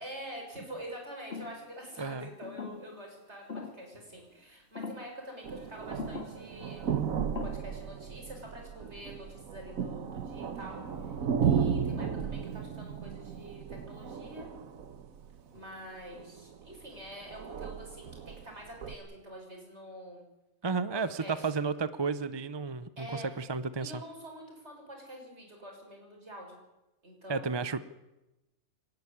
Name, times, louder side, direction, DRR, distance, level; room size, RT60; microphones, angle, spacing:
voice 1, 0.0-7.1 7.4-11.1 11.4-14.5 15.5-20.2 20.7-21.5 23.0-23.3 23.8-26.6 27.0-27.8, right 1 dB, 50° right, 1 dB, 6.7 m, -46 dB
sound 1, 1.3-1.7 2.4-3.0 3.5-3.9 4.7-5.1 6.0-6.4 7.2-7.5, left 4 dB, 50° left, 2.4 m, -40 dB
voice 2, 2.0-2.3 20.6-24.0 27.3-27.9, right 4 dB, 30° right, 14 dB, 0.5 m, -32 dB
sound 2, 3.1-5.0 5.4-7.8 8.3-9.3 10.6-12.2 15.5-16.2, equal, 10° left, 5.3 m, -62 dB
sound 3, 5.4-15.5 16.1-19.0, right 7 dB, 80° right, 1.5 m, -35 dB
27.5 x 12.0 x 9.8 m, 1.0 s
omnidirectional pair, 1.4 m